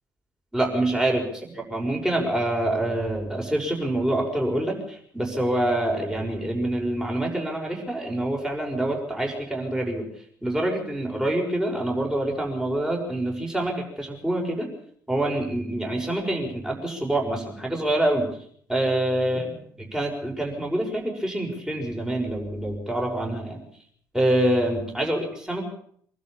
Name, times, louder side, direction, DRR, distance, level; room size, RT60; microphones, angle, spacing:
voice 1, 0.5-1.2 1.6-10.1 10.4-14.7 15.1-18.3 18.7-19.5 19.9-23.6 24.1-25.6, right 1 dB, 5° right, 0 dB, 6.3 m, -26 dB
25.0 x 12.5 x 8.6 m, 0.63 s
figure-of-eight pair, 55°, 10 cm